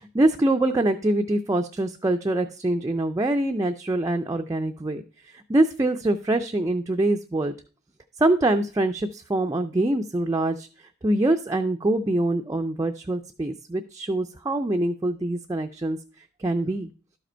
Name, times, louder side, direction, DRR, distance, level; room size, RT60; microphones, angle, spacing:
voice 1, 0.0-7.5 8.2-10.7 11.0-16.0 16.4-16.9, right 1 dB, 15° right, 4 dB, 0.3 m, -24 dB
12.0 x 5.0 x 4.4 m, 0.37 s
head